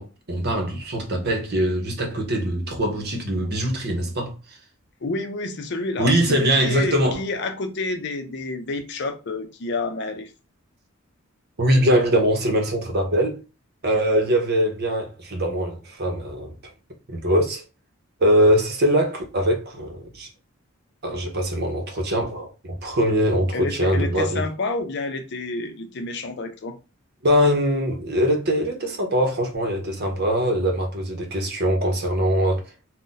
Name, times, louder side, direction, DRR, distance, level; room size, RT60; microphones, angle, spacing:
voice 1, 0.0-4.4 6.0-7.2 11.6-13.4 13.8-16.5 17.1-17.6 18.2-20.3 21.0-24.4 27.2-32.6, equal, 50° right, 0.8 m, -22 dB
voice 2, 5.0-10.3 23.5-26.8, left 3 dB, 55° left, 0.5 m, -29 dB
2.5 x 2.1 x 3.9 m
head